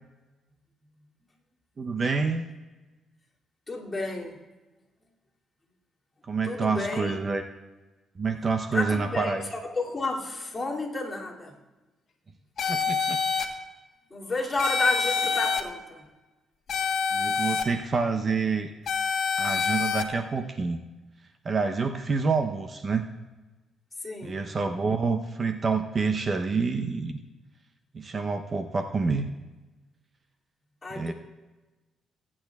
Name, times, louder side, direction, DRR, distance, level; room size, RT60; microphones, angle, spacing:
voice 1, 1.8-2.5 6.3-7.4 8.2-9.5 12.7-13.2 17.1-18.7 19.4-20.8 21.4-23.1 24.2-27.2 27.9-29.3 31.0-31.1, right 4 dB, 40° right, 6 dB, 0.7 m, -27 dB
voice 2, 3.7-4.4 6.4-7.2 8.7-11.5 14.1-16.1 24.0-24.4 30.8-31.1, left 2 dB, 25° left, -3 dB, 2.6 m, -31 dB
sound 1, 12.6-13.5 14.6-15.6 16.7-17.6 18.9-20.0, left 6 dB, 60° left, 1.2 m, -26 dB
21.0 x 8.7 x 2.4 m, 1.2 s
cardioid pair, 90°, 0 cm